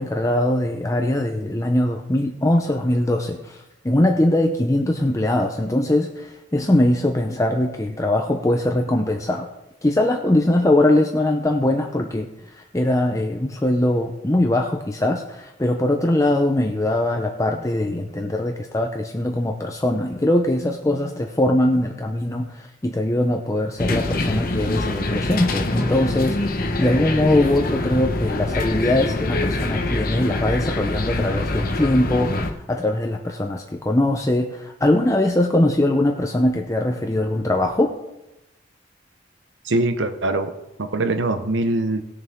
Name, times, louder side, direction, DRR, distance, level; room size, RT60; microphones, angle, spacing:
voice 1, 0.0-9.5 9.8-37.9, left 1 dB, 15° left, 3 dB, 0.7 m, -21 dB
sound 1, 23.8-32.5, left 2 dB, 50° left, 1.1 m, -24 dB
voice 2, 39.6-40.5 40.8-42.0, right 2 dB, 80° right, 8 dB, 0.8 m, -22 dB
19.0 x 6.7 x 3.6 m, 0.94 s
head